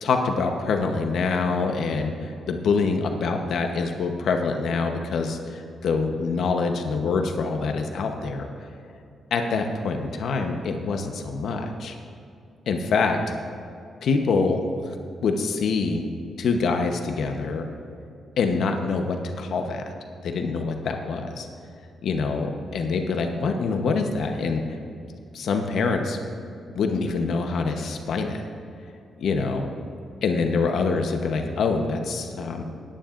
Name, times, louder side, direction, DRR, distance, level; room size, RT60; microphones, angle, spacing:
voice 1, 0.0-8.5 9.3-12.0 12.7-13.2 14.0-15.0 15.2-16.0 16.4-17.7 18.4-19.8 20.2-21.5 22.0-24.8 25.3-26.2 26.7-28.4 29.2-29.7 30.2-32.6, left 4 dB, 70° left, 4 dB, 0.9 m, -25 dB
19.5 x 10.0 x 2.5 m, 2.5 s
cardioid pair, 125°, 0 cm